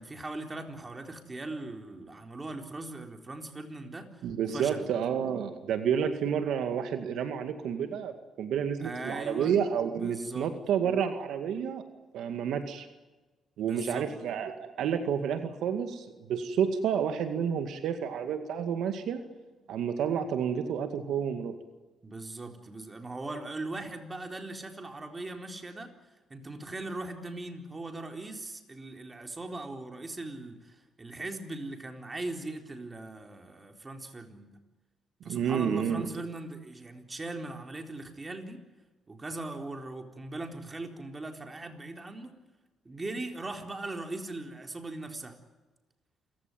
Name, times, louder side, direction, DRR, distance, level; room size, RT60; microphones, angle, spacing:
voice 1, 0.0-4.2 4.5-4.9 8.8-9.6 10.0-10.5 13.6-14.1 22.0-34.6 35.2-38.6 39.1-42.3 42.8-45.4, right 2 dB, 25° right, 4 dB, 4.0 m, -39 dB
voice 2, 4.2-11.8 12.1-12.9 13.6-19.2 19.7-21.5 35.2-36.1, right 8 dB, 80° right, 7 dB, 2.1 m, -30 dB
27.5 x 16.0 x 9.4 m, 1.2 s
cardioid pair, 90°, 0 cm